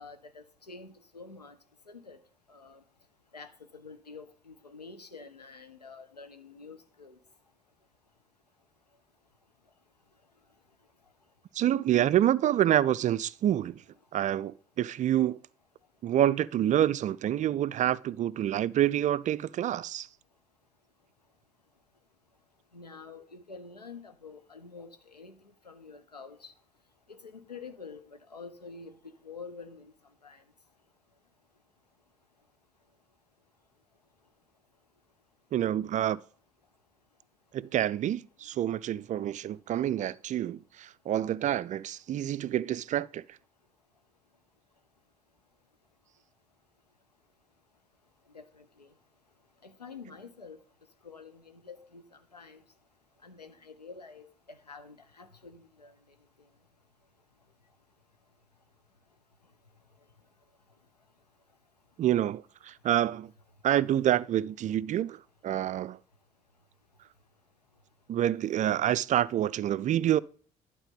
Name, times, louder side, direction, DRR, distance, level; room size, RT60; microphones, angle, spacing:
voice 1, 0.0-1.6 1.9-2.2 2.5-2.8 3.3-7.2 22.7-25.4 25.6-26.5 27.1-28.9 29.2-29.9 30.2-30.4 48.3-48.9 49.6-50.6 51.0-52.6 53.2-56.0, left 4 dB, 90° left, 0.7 m, -48 dB
voice 2, 11.5-13.8 14.1-15.4 16.0-20.1 35.5-36.2 37.5-43.2 62.0-63.3 63.6-66.0 68.1-70.2, right 11 dB, 40° right, 0.4 m, -27 dB
11.5 x 4.3 x 5.3 m
figure-of-eight pair, 50°, 20 cm